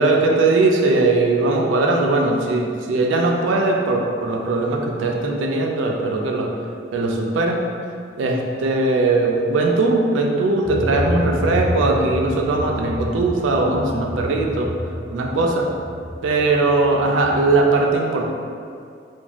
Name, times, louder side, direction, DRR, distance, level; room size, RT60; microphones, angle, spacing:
voice 1, 0.0-6.5 6.9-7.6 8.2-14.7 15.1-15.7 16.2-18.2, right 2 dB, 85° right, 1 dB, 0.3 m, -19 dB
sound 1, 10.6-17.6, equal, 15° right, 0.4 m, -29 dB
2.4 x 2.2 x 2.9 m, 2.3 s
head